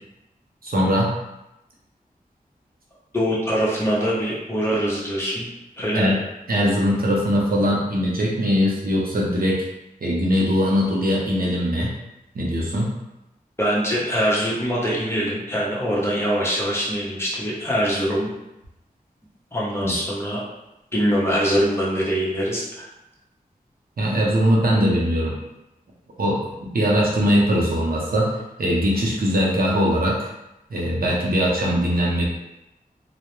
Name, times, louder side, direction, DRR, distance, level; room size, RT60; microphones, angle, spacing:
voice 1, 0.6-1.1 5.9-6.2 6.5-9.6 10.0-11.9 12.3-12.9 19.8-19.9 24.0-25.4 26.2-28.3 28.6-30.3 30.7-32.2, equal, 70° right, -3 dB, 0.6 m, -21 dB
voice 2, 3.1-5.5 5.8-6.1 13.6-18.3 19.5-20.4 20.9-22.9, equal, 15° left, -5 dB, 0.7 m, -23 dB
2.2 x 2.1 x 2.9 m, 0.92 s
wide cardioid pair, 80°, 16 cm